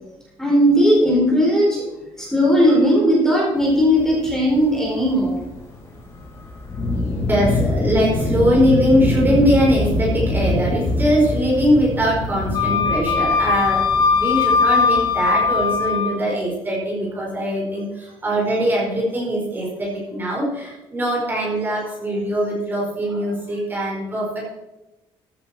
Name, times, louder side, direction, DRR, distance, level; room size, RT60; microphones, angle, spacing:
voice 1, 0.4-1.8 2.2-5.3, equal, 5° left, -4 dB, 4.2 m, -17 dB
sound 1, 3.6-15.8, left 2 dB, 30° left, 3.1 m, -25 dB
voice 2, 7.3-24.5, equal, 20° right, -3 dB, 4.4 m, -21 dB
Wind instrument woodwind instrument, 12.5-16.2, left 5 dB, 50° left, 1.3 m, -19 dB
14.5 x 9.6 x 4.3 m, 0.98 s
cardioid pair, 155°, 10 cm